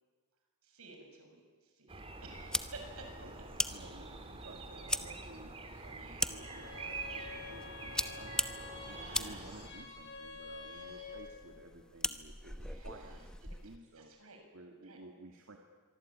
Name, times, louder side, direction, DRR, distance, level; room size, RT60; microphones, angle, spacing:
voice 1, 0.6-3.5 6.0-6.2 8.7-9.5 10.7-11.2 12.6-13.6 14.0-14.4 14.8-15.0, right 3 dB, 85° right, 3 dB, 6.8 m, -54 dB
sound 1, 1.9-9.7, right 3 dB, 25° right, 2.5 m, -46 dB
sound 2, 2.3-13.8, left 1 dB, 5° left, 1.0 m, -41 dB
voice 2, 3.2-8.4 8.9-14.2 14.5-15.6, right 2 dB, 65° right, 2 dB, 2.4 m, -54 dB
Bowed string instrument, 6.3-11.4, left 4 dB, 55° left, 6.9 m, -49 dB
25.5 x 23.5 x 8.9 m, 1.5 s
head